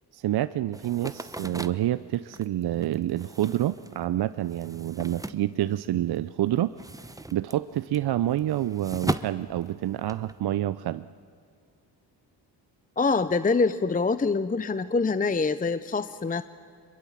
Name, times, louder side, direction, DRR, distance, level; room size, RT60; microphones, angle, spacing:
voice 1, 0.1-6.7 7.3-11.1, right 13 dB, 50° right, 14 dB, 0.6 m, -28 dB
sound 1, 0.7-6.2 6.5-10.4, right 2 dB, 5° right, 0.9 m, -37 dB
voice 2, 13.0-16.4, left 4 dB, 15° left, 14 dB, 0.7 m, -25 dB
24.5 x 22.0 x 7.4 m, 2.4 s
supercardioid pair, 55°, 49 cm